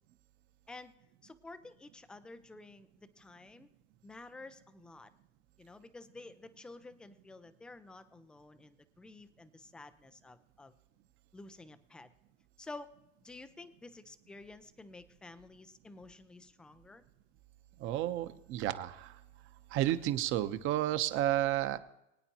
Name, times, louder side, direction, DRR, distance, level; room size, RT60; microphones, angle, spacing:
voice 1, 1.2-3.7 4.0-5.1 5.6-10.7 11.3-12.1 12.6-12.9 13.2-17.0, left 2 dB, 5° left, 12 dB, 0.3 m, -51 dB
voice 2, 17.8-19.2 19.7-21.8, right 13 dB, 35° right, 11 dB, 0.9 m, -31 dB
24.0 x 8.9 x 2.9 m, 0.89 s
supercardioid pair, 140°, 34 cm